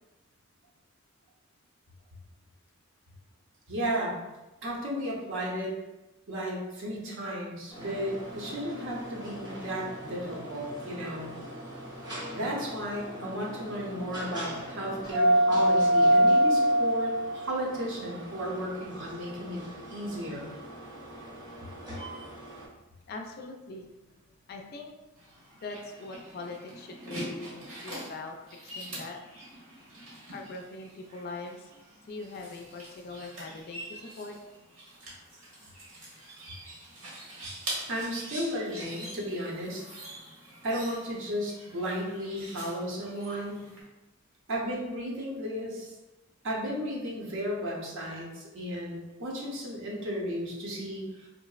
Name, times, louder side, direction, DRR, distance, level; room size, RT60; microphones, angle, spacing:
voice 1, 3.7-4.2 4.6-5.8 6.3-11.3 12.3-19.6 19.9-20.5 37.9-39.8 40.6-43.7 44.5-45.9 46.4-51.3, equal, 60° right, -3 dB, 0.7 m, -34 dB
sound 1, 7.7-22.6, equal, 20° right, 0.7 m, -29 dB
voice 2, 23.1-23.9 24.5-24.9 25.6-28.4 28.6-29.2 30.3-34.4, left 3 dB, 45° left, 3 dB, 0.3 m, -42 dB
sound 2, 25.2-43.8, right 1 dB, 80° right, 1.1 m, -44 dB
3.8 x 2.0 x 2.3 m, 1.0 s
head